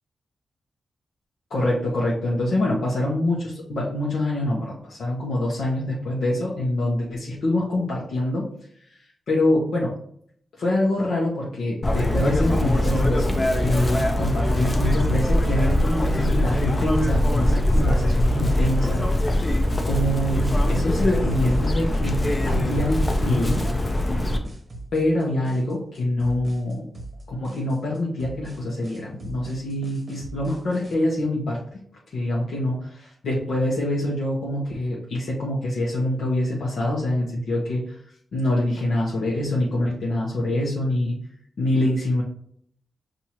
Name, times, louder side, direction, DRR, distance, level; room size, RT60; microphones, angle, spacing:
voice 1, 1.5-8.5 9.3-9.9 10.6-19.0 19.8-22.2 22.4-23.7 24.9-26.9 27.3-31.6 32.1-38.0 38.3-41.2 41.6-42.2, left 1 dB, 75° left, -5 dB, 0.9 m, -25 dB
Chirp tweet, 11.8-24.4, left 1 dB, 25° left, 0.5 m, -22 dB
sound 1, 14.9-30.9, right 1 dB, 35° right, 0.9 m, -41 dB
5.8 x 2.6 x 2.9 m, 0.64 s
wide cardioid pair, 110°, 0 cm